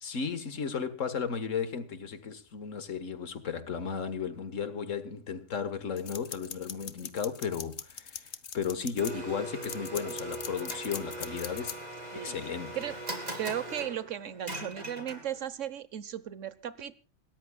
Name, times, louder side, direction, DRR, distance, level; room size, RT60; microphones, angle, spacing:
voice 1, 0.0-11.8 12.2-12.8, left 6 dB, 85° left, 1.9 m, -35 dB
sound 1, 6.0-9.1 9.6-11.8, left 7 dB, 60° left, 1.4 m, -40 dB
Domestic sounds home sounds, 9.0-15.5, right 2 dB, 35° right, 3.3 m, -40 dB
voice 2, 12.1-12.5 12.7-12.9 13.4-17.0, right 10 dB, 80° right, 1.4 m, -36 dB
27.5 x 14.0 x 2.3 m
omnidirectional pair, 1.3 m